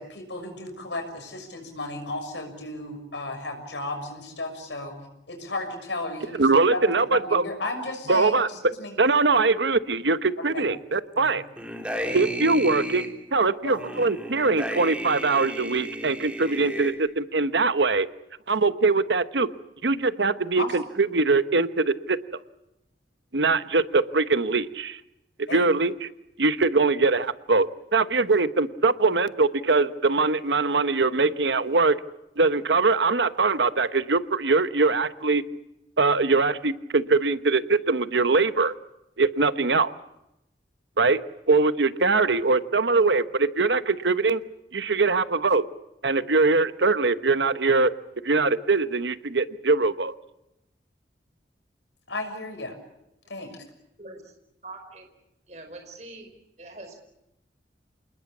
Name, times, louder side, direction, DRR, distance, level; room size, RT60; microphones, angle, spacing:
voice 1, 0.0-5.0 5.3-9.0 10.4-10.6 11.1-11.3 12.1-12.2 13.6-13.8 20.6-20.7 25.5-25.6 52.1-52.8 53.3-53.5, left 2 dB, 85° left, 5 dB, 6.5 m, -34 dB
voice 2, 6.4-7.5 8.1-8.7 9.0-11.4 12.1-13.0 13.3-18.1 18.5-19.5 19.8-22.2 23.3-25.0 25.4-26.1 26.4-32.0 32.4-35.4 36.0-38.8 39.2-39.9 41.0-41.2 41.5-44.4 44.7-45.6 46.0-47.9 48.2-50.1, right 3 dB, 80° right, 12 dB, 1.0 m, -22 dB
sound 1, 11.6-13.1 13.7-16.9, equal, 5° right, 3.4 m, -33 dB
voice 3, 54.0-54.3 54.6-55.1 55.5-56.3 56.6-57.0, right 2 dB, 40° right, 4 dB, 4.9 m, -43 dB
27.5 x 20.5 x 8.5 m, 0.87 s
head